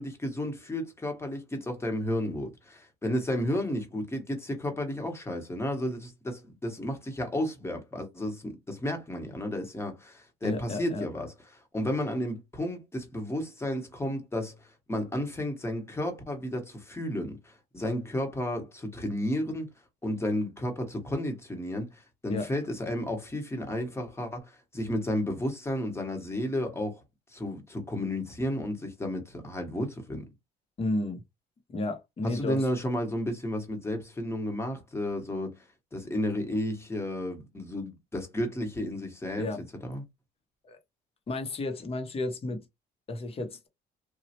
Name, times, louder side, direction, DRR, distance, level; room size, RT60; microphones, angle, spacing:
voice 1, 0.0-11.3 11.7-19.7 20.0-27.0 27.3-30.2 32.2-35.6 35.9-39.5 39.8-40.0, left 1 dB, 15° left, 1.1 m, -32 dB
voice 2, 10.4-11.0 22.3-22.5 30.8-31.2 31.7-32.6 39.4-39.6 40.6-40.8 41.3-42.6 43.1-43.7, left 2 dB, 35° left, 0.9 m, -32 dB
3.1 x 2.3 x 2.8 m
cardioid pair, 110°, 17 cm